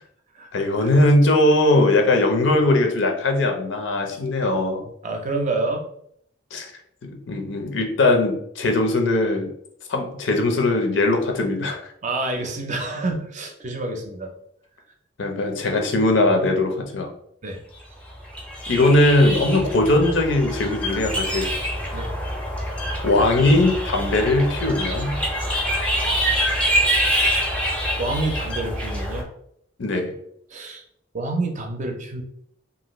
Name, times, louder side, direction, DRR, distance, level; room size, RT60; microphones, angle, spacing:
voice 1, 0.5-4.9 6.5-6.7 7.0-9.5 9.9-11.9 15.2-17.1 18.7-21.5 23.0-25.2 29.8-30.1, left 2 dB, 85° left, 3 dB, 0.6 m, -20 dB
voice 2, 5.0-5.8 12.0-14.3 17.4-17.6 21.9-22.1 28.0-29.3 30.5-30.8 31.1-32.2, right 2 dB, 40° right, 3 dB, 0.5 m, -28 dB
sound 1, 18.1-29.2, equal, 5° left, 0.5 m, -25 dB
2.6 x 2.4 x 3.0 m, 0.71 s
head